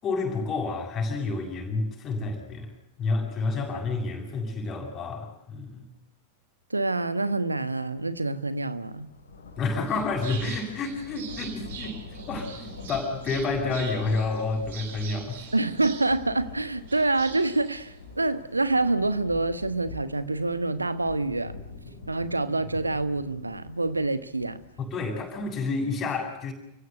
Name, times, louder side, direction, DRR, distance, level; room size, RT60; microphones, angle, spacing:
voice 1, 0.0-2.7 3.0-5.8 9.6-15.5 24.8-26.5, left 3 dB, 30° left, 8.0 m, -29 dB
voice 2, 6.7-9.1 15.5-21.5 22.1-24.6, right 2 dB, 80° right, 1.3 m, -26 dB
sound 1, 7.9-8.1 8.5-25.8, left 3 dB, 70° left, 4.4 m, -45 dB
sound 2, 9.7-18.6, right 8 dB, 55° right, 4.2 m, -44 dB
30.0 x 16.5 x 8.2 m
figure-of-eight pair, 90°, 0 cm